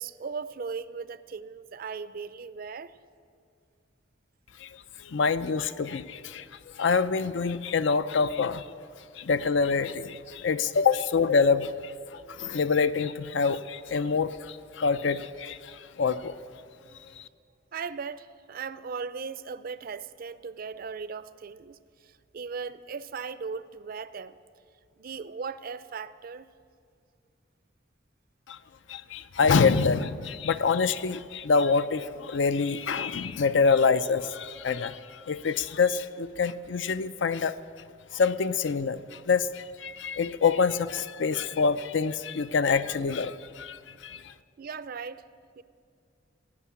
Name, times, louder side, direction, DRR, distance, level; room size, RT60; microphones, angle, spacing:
voice 1, 0.0-3.0 17.7-24.4 25.0-26.5 44.6-45.2 45.6-45.7, right 5 dB, 50° right, 16 dB, 0.5 m, -38 dB
voice 2, 5.0-6.5 6.7-8.7 9.2-16.3 17.2-17.3 28.5-28.6 28.9-37.6 38.1-44.3, left 5 dB, 70° left, 14 dB, 0.5 m, -26 dB
17.0 x 8.7 x 8.4 m, 2.3 s
head